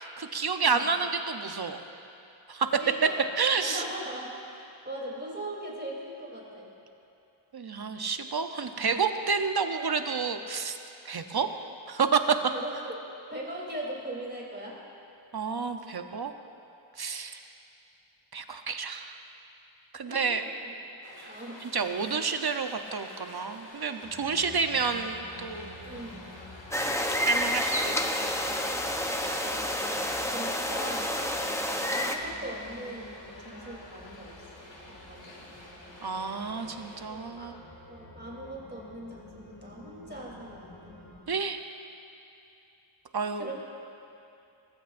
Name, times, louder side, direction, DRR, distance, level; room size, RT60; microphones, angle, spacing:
voice 1, 0.0-1.8 2.5-2.7 3.4-3.8 7.5-10.8 11.0-11.5 11.9-12.4 15.3-16.3 17.0-17.4 18.3-19.2 19.9-20.4 21.2-21.3 21.6-25.7 27.2-28.1 36.0-37.6 41.3-41.6 43.1-43.5, right 5 dB, 50° right, 7 dB, 0.8 m, -30 dB
voice 2, 2.8-3.2 3.6-6.7 8.8-9.0 12.5-13.0 13.3-14.8 20.0-20.2 20.6-20.9 21.2-21.6 22.0-22.2 25.8-26.2 30.2-31.2 31.9-35.5 37.1-37.5 37.9-40.9 43.3-43.5, right 1 dB, 20° right, -4 dB, 3.4 m, -40 dB
sound 1, 21.0-37.0, left 1 dB, 65° left, 2.2 m, -49 dB
sound 2, 24.0-41.2, left 2 dB, 40° left, 3.3 m, -50 dB
sound 3, 26.7-32.2, equal, 5° left, 0.8 m, -29 dB
19.5 x 15.0 x 2.6 m, 2.7 s
wide cardioid pair, 80°, 49 cm